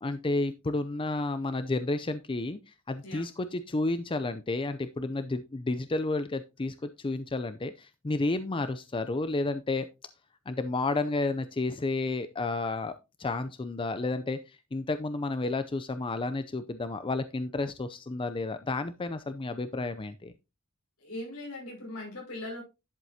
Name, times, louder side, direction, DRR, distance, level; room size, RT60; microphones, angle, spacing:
voice 1, 0.0-2.6 2.9-9.9 10.5-12.9 13.2-14.4 14.7-20.3, left 2 dB, 25° left, 0.5 m, -31 dB
voice 2, 21.0-22.6, left 1 dB, 75° left, 5.8 m, -39 dB
11.0 x 7.5 x 2.8 m
head